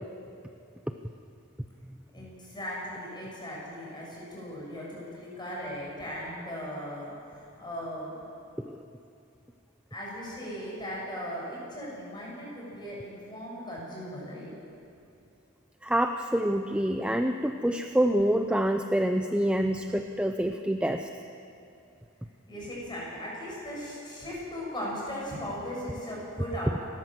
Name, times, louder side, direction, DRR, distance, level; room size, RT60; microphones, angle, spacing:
voice 1, 2.1-8.2 9.9-14.6 19.6-19.7 22.5-26.9, equal, 20° left, -4 dB, 7.3 m, -38 dB
voice 2, 15.8-21.1, right 1 dB, 5° right, 6 dB, 0.5 m, -26 dB
29.5 x 13.0 x 7.7 m, 2.6 s
head